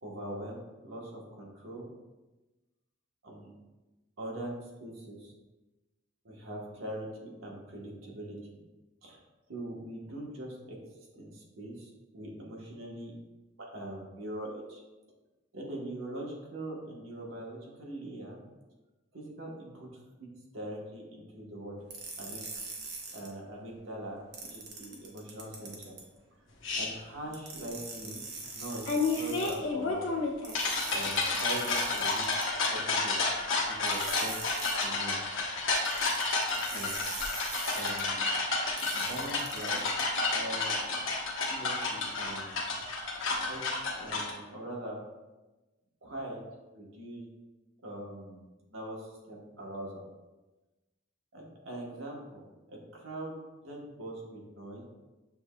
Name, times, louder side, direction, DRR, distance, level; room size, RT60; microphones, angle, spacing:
voice 1, 0.0-1.9 3.2-3.5 4.2-4.5 4.8-5.3 6.2-8.4 9.0-9.2 9.5-13.1 13.6-14.8 15.5-18.4 19.1-19.9 20.2-20.3 20.5-21.7 22.2-22.4 23.1-24.2 24.5-25.9 26.7-28.2 28.5-30.1 30.9-32.2 32.6-33.2 33.6-35.2 36.7-37.0 37.7-38.3 38.9-39.8 40.2-40.8 41.5-42.6 43.4-43.6 43.9-45.0 46.0-46.4 46.7-47.2 47.8-48.4 48.7-50.0 51.3-53.3 53.6-54.8, right 1 dB, 80° right, -2 dB, 1.1 m, -42 dB
sound 1, 21.9-23.3 24.3-26.0 27.3-29.6 30.4-32.7 33.9-34.9 35.8-38.0 38.8-40.0, right 3 dB, 55° right, 0.8 m, -42 dB
sound 2, 26.6-26.9 28.9-44.3, left 3 dB, 75° left, 1.0 m, -31 dB
6.9 x 3.4 x 2.2 m, 1.1 s
head